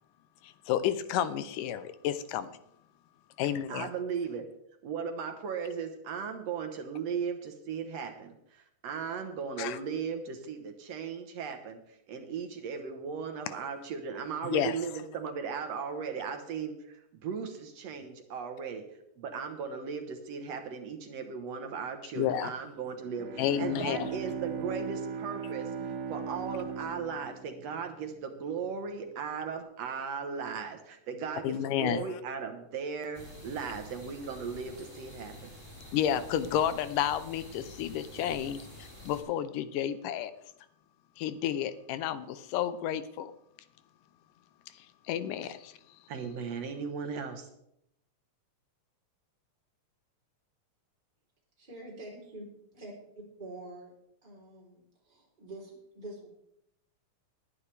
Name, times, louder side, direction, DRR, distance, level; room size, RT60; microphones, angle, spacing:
voice 1, 0.4-2.6 3.4-3.9 9.6-9.8 14.4-14.8 22.2-22.5 23.4-24.1 31.4-32.1 35.9-40.3 41.2-43.3 45.1-45.7, left 10 dB, 85° left, 12 dB, 2.3 m, -31 dB
voice 2, 3.7-4.5 4.8-18.9 19.2-35.5 46.1-47.5, right 6 dB, 60° right, 5 dB, 2.0 m, -37 dB
Bowed string instrument, 23.0-28.6, right 7 dB, 85° right, 1.1 m, -39 dB
sound 1, 33.1-39.2, left 1 dB, 10° left, 4.3 m, -48 dB
voice 3, 51.6-52.9 53.4-53.9 54.2-56.3, right 1 dB, 15° right, -3 dB, 3.7 m, -46 dB
19.5 x 10.0 x 3.3 m, 0.77 s
omnidirectional pair, 3.7 m